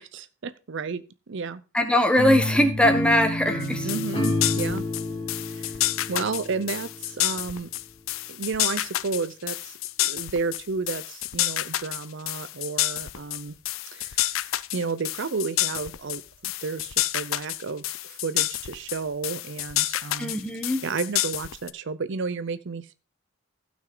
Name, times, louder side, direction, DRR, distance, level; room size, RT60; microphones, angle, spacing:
voice 1, 0.0-1.6 3.8-4.8 5.5-5.8 6.1-7.7 8.3-13.6 13.9-14.3 14.7-20.3 20.8-22.9, right 4 dB, 60° right, 14 dB, 0.6 m, -32 dB
voice 2, 1.7-3.9 20.2-20.8, left 1 dB, 5° left, 6 dB, 1.5 m, -21 dB
sound 1, 2.2-7.3, left 1 dB, 30° left, 2.8 m, -29 dB
sound 2, 3.6-21.7, left 15 dB, 75° left, 0.5 m, -29 dB
15.5 x 6.1 x 3.9 m, 0.32 s
head